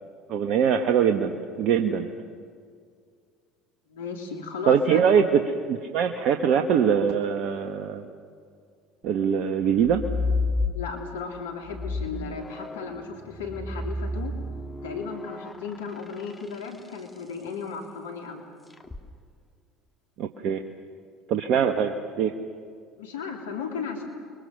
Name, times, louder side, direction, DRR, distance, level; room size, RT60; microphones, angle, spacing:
voice 1, 0.3-2.1 4.7-8.0 9.0-10.0 20.2-20.6 21.3-22.3, right 7 dB, 55° right, 6 dB, 1.4 m, -23 dB
voice 2, 3.9-5.1 10.7-14.3 14.8-18.4 23.0-24.1, left 5 dB, 80° left, 2 dB, 3.2 m, -35 dB
sound 1, 9.8-11.2 11.7-17.2 18.7-19.0, left 2 dB, 15° left, 2.4 m, -31 dB
30.0 x 23.0 x 6.7 m, 2.1 s
hypercardioid pair, 65°, 0 cm